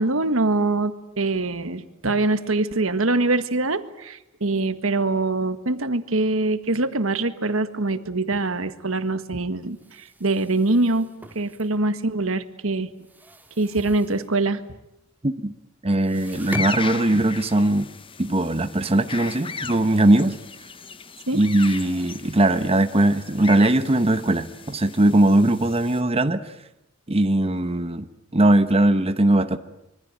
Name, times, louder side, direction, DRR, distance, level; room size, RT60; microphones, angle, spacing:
voice 1, 0.0-11.1 11.3-12.9 13.6-14.6 21.3-21.4, right 2 dB, 85° right, 11 dB, 1.7 m, -24 dB
sound 1, 9.6-12.2 12.5-14.6 14.9-15.0 15.4-15.5 15.8-24.1, right 1 dB, 10° right, 2.2 m, -42 dB
voice 2, 15.8-17.9 18.2-20.3 21.3-26.4 27.1-28.1 28.3-29.6, right 1 dB, 30° right, 10 dB, 1.1 m, -20 dB
sound 2, 16.1-26.0, left 5 dB, 25° left, 1.0 m, -37 dB
26.0 x 23.5 x 8.9 m, 0.85 s
head